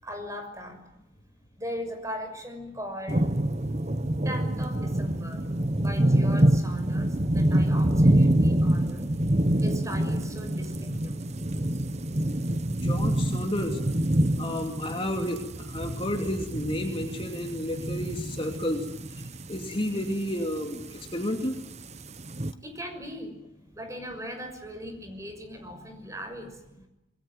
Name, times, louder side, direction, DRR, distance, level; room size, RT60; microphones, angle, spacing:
voice 1, 0.0-0.8 1.6-3.3 4.2-5.4 5.7-9.1 9.6-11.1 22.6-26.6, equal, 15° right, 6 dB, 6.4 m, -38 dB
sound 1, 3.1-22.5, right 1 dB, 35° right, 1.1 m, -26 dB
voice 2, 12.8-13.8 14.4-18.9 19.5-21.5, left 1 dB, 25° left, 3 dB, 2.9 m, -31 dB
28.0 x 22.5 x 9.4 m, 0.90 s
head